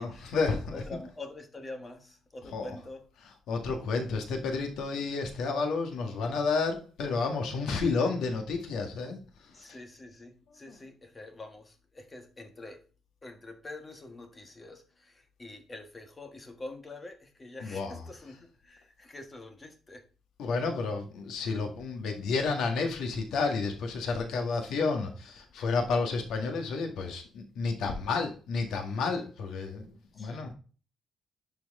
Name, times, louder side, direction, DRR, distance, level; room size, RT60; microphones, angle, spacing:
voice 1, 0.0-0.8 2.5-2.8 3.5-9.6 10.6-10.8 17.6-18.0 20.4-30.5, left 4 dB, 80° left, 1.8 m, -31 dB
voice 2, 0.7-3.0 9.5-12.8 13.2-20.0 30.1-30.4, left 2 dB, 20° left, 1.4 m, -46 dB
11.0 x 4.6 x 3.6 m
cardioid pair, 145°, 0 cm